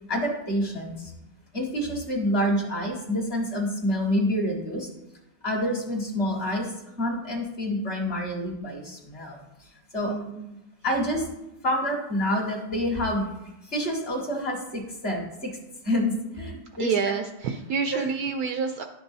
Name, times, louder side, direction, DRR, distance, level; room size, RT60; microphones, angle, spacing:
voice 1, 0.1-1.1 1.5-4.9 5.4-9.4 9.9-10.1 10.8-11.3 11.6-13.3 13.7-15.6 15.8-16.9 17.9-18.0, equal, 35° left, -2 dB, 1.7 m, -27 dB
voice 2, 10.0-10.6 16.8-18.8, right 6 dB, 70° right, 6 dB, 0.9 m, -28 dB
11.5 x 6.1 x 2.7 m, 0.91 s
omnidirectional pair, 1.9 m